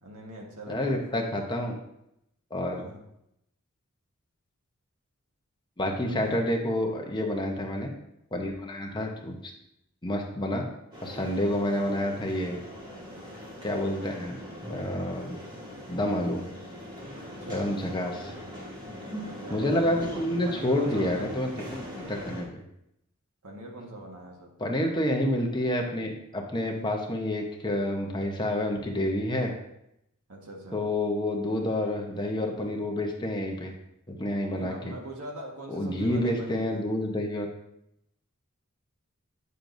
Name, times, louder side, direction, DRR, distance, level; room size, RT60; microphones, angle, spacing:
voice 1, 0.0-1.3 2.8-3.0 6.1-6.4 11.4-11.6 17.2-17.8 19.2-21.4 23.4-24.5 30.3-30.8 34.5-36.8, right 1 dB, 85° right, 0 dB, 1.6 m, -42 dB
voice 2, 0.7-1.8 2.5-2.8 5.8-7.9 8.3-9.5 10.0-10.6 11.0-12.6 13.6-14.4 14.7-15.4 15.9-16.5 17.5-18.3 19.5-22.5 24.6-29.5 30.7-33.7 34.1-34.7 35.7-37.5, left 1 dB, 20° left, 1 dB, 0.9 m, -29 dB
sound 1, 10.9-22.4, equal, 20° right, 2.2 m, -41 dB
9.0 x 6.7 x 2.7 m, 0.79 s
head